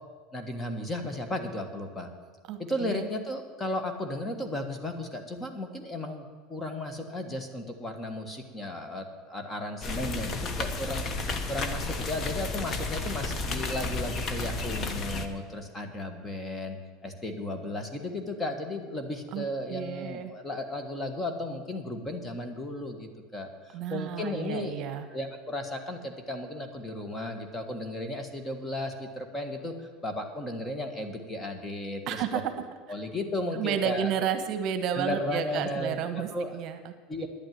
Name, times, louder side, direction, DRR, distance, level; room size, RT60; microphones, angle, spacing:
voice 1, 0.3-2.1 2.6-11.1 11.5-16.8 17.0-24.8 25.1-32.4 32.9-34.1 35.0-36.6 37.1-37.3, left 1 dB, 15° left, 6 dB, 1.6 m, -35 dB
voice 2, 2.5-3.1 19.3-20.3 23.7-25.1 32.1-32.4 33.5-36.9 37.2-37.3, right 9 dB, 50° right, 8 dB, 1.2 m, -32 dB
sound 1, 9.8-15.3, left 3 dB, 35° left, 1.2 m, -32 dB
10.5 x 8.9 x 9.5 m, 1.5 s
supercardioid pair, 130°, 0 cm